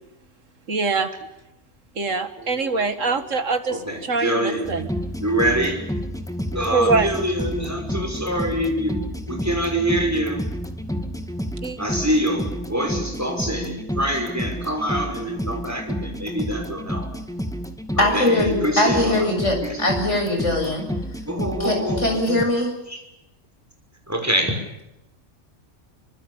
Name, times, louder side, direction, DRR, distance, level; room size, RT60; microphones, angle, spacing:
voice 1, 0.7-1.1 2.0-4.9 6.7-7.1 11.6-11.8, right 4 dB, 85° right, 8 dB, 2.3 m, -23 dB
voice 2, 2.4-3.1 3.7-4.7 5.2-5.8 6.5-9.0 9.3-10.4 11.8-17.1 17.9-19.3 19.6-19.8 21.3-22.2 22.9-23.0 24.1-24.5, right 1 dB, 10° right, 3 dB, 5.9 m, -25 dB
sound 1, 4.6-22.5, equal, 5° left, 2.2 m, -30 dB
voice 3, 18.0-20.8 21.6-22.7, left 1 dB, 70° left, 3 dB, 7.6 m, -21 dB
26.5 x 24.5 x 7.2 m, 0.91 s
omnidirectional pair, 1.3 m